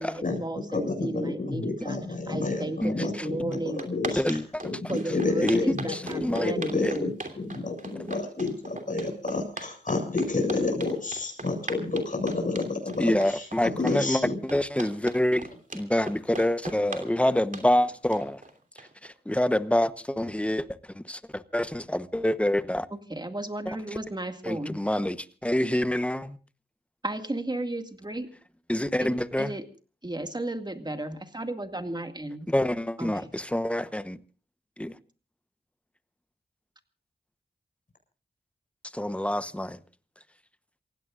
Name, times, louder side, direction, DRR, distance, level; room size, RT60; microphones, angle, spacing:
voice 1, 0.0-2.0 2.3-3.9 4.9-7.1 23.1-24.8 27.0-28.3 29.0-29.1 29.4-29.6 30.0-32.5 33.0-33.3, right 1 dB, 25° right, 2.1 m, -34 dB
voice 2, 0.7-7.1 7.4-14.3, left 3 dB, 45° left, 7.4 m, -30 dB
voice 3, 2.8-3.3 4.1-4.6 5.4-6.5 6.8-6.9 13.0-15.5 15.7-18.4 18.8-22.9 23.7-23.8 24.4-25.2 25.4-26.4 28.7-29.5 32.5-34.2 34.8-35.0 38.8-39.8, left 1 dB, 5° left, 1.0 m, -27 dB
sound 1, 3.2-3.3 3.5-19.1, right 2 dB, 45° right, 2.9 m, -39 dB
28.0 x 16.5 x 2.5 m
cardioid pair, 50°, 19 cm